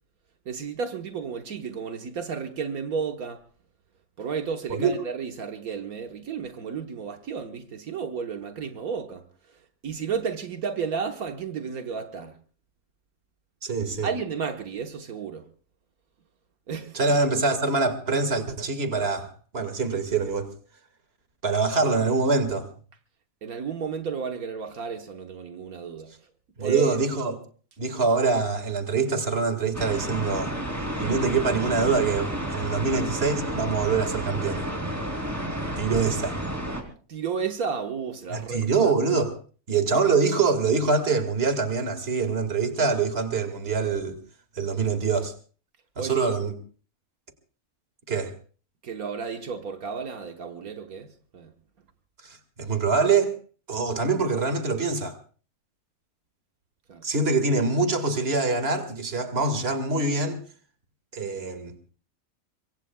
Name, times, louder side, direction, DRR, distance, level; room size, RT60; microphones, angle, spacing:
voice 1, 0.4-3.4 4.2-9.2 9.8-12.3 14.0-15.4 16.7-17.0 23.4-26.1 26.6-26.9 37.1-38.9 46.0-46.3 48.8-51.1 51.3-51.5 56.9-57.0, right 6 dB, 80° right, 1.7 m, -32 dB
voice 2, 13.6-14.1 16.9-20.5 21.4-22.7 26.6-27.4 27.8-30.5 31.0-34.7 35.8-36.4 38.3-39.3 39.7-44.2 44.6-45.3 46.0-46.6 48.1-48.3 52.2-53.3 53.7-55.2 57.0-60.4 61.1-61.7, right 4 dB, 45° right, 2.1 m, -24 dB
sound 1, 29.7-36.8, right 1 dB, 10° right, 3.0 m, -31 dB
25.5 x 23.0 x 2.3 m
omnidirectional pair, 1.5 m